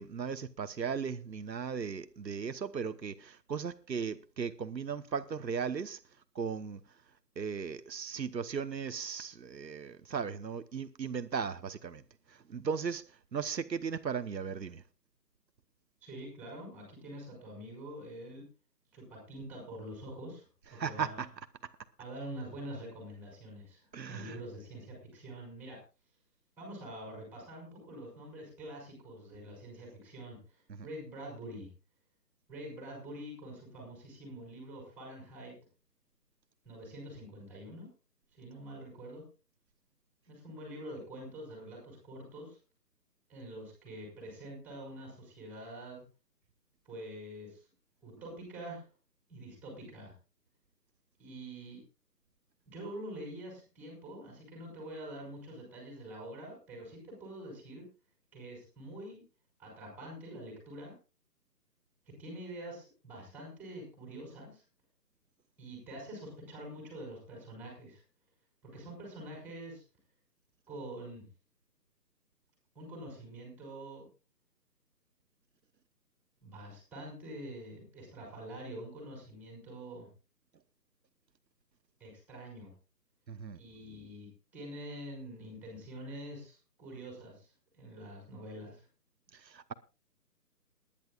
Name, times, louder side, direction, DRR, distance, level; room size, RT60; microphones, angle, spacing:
voice 1, 0.0-6.0 6.3-6.8 7.4-12.0 12.3-14.8 20.7-21.3 23.9-24.4 30.7-30.9 83.3-83.6 89.3-89.7, right 6 dB, 85° right, 1.1 m, -37 dB
voice 2, 16.0-18.4 18.9-21.2 22.0-25.8 26.6-31.7 32.5-35.5 36.6-37.9 38.3-39.2 40.3-42.6 43.3-46.0 46.8-47.6 48.0-48.9 49.3-50.1 51.2-51.8 52.7-57.8 58.3-59.2 59.6-60.9 62.2-64.6 65.6-68.0 68.6-69.8 70.7-71.3 72.7-74.1 76.4-80.1 82.0-82.7 83.5-88.9, right 1 dB, 5° right, 4.9 m, -46 dB
28.0 x 10.5 x 2.4 m
figure-of-eight pair, 160°, 49 cm